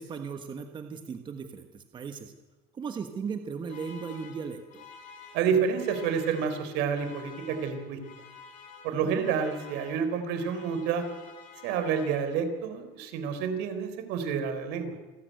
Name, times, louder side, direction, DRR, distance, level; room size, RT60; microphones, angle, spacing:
voice 1, 0.0-2.3 2.7-4.9 8.9-9.1, right 5 dB, 25° right, 6 dB, 1.3 m, -37 dB
sound 1, 3.7-12.7, left 5 dB, 45° left, 5.5 m, -50 dB
voice 2, 5.3-8.0 8.8-11.1 11.6-14.9, right 6 dB, 65° right, 9 dB, 3.8 m, -29 dB
27.5 x 13.0 x 9.3 m, 1.3 s
cardioid pair, 155°, 20 cm